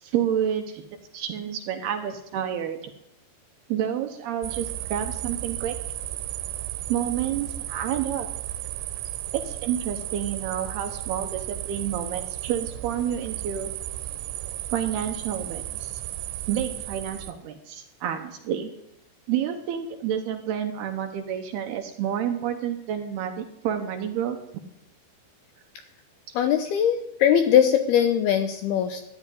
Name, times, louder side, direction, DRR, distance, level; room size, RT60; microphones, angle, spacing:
voice 1, 0.0-0.8 1.1-2.9 3.7-5.8 6.9-8.3 9.3-13.7 14.7-16.0 16.5-18.7 19.3-24.4, right 9 dB, 70° right, 5 dB, 2.6 m, -29 dB
sound 1, 4.4-17.3, right 13 dB, 90° right, 3.3 m, -34 dB
voice 2, 26.3-29.0, left 9 dB, 75° left, 7 dB, 2.4 m, -21 dB
13.5 x 11.0 x 9.9 m, 0.86 s
omnidirectional pair, 5.4 m